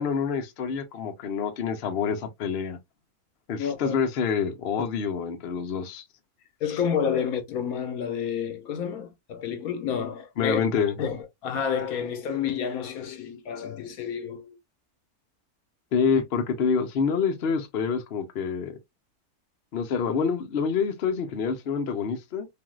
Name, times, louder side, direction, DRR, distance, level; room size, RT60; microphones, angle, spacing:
voice 1, 0.0-2.8 3.5-6.0 10.4-10.9 15.9-18.7 19.7-22.5, left 6 dB, 55° left, 0.7 m, -27 dB
voice 2, 3.6-4.0 6.6-10.6 11.0-14.6, left 7 dB, 70° left, 1.1 m, -30 dB
3.4 x 2.6 x 2.3 m
omnidirectional pair, 1.6 m